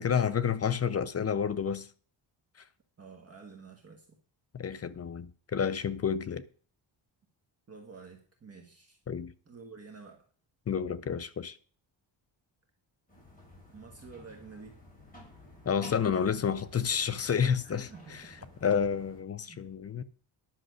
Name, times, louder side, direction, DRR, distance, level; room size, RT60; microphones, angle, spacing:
voice 1, 0.0-1.9 4.5-6.4 9.1-9.3 10.7-11.6 15.7-18.2 18.6-20.0, left 7 dB, 35° left, 0.5 m, -30 dB
voice 2, 3.0-4.2 7.7-9.0 9.5-10.2 13.7-14.8 17.6-18.5 19.5-19.6, right 4 dB, 30° right, 1.5 m, -50 dB
sound 1, 13.1-19.2, left 1 dB, 20° left, 5.8 m, -52 dB
10.5 x 6.3 x 6.3 m
wide cardioid pair, 175°, 47 cm